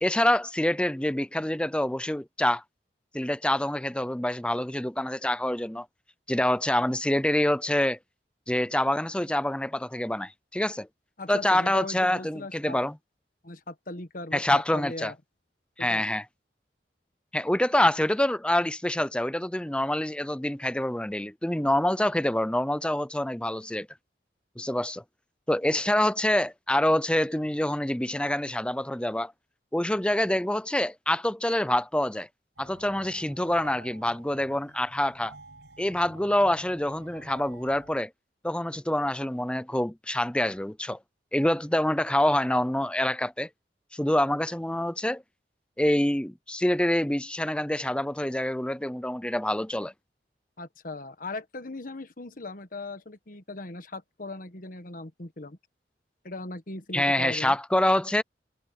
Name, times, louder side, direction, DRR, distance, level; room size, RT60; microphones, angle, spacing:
voice 1, 0.0-2.6 3.1-5.9 6.3-8.0 8.5-10.9 11.3-13.0 14.3-15.1 15.8-16.2 17.3-23.9 24.6-25.0 25.5-29.3 29.7-32.3 32.6-35.3 35.8-38.1 38.4-41.0 41.3-43.5 43.9-45.2 45.8-49.9 56.9-58.2, left 1 dB, 5° left, 0.6 m, -26 dB
voice 2, 11.2-12.8 13.4-15.2 15.8-16.0 50.6-55.6 56.2-57.6, left 2 dB, 50° left, 1.4 m, -39 dB
sound 1, 32.6-38.0, right 2 dB, 85° right, 7.0 m, -50 dB
head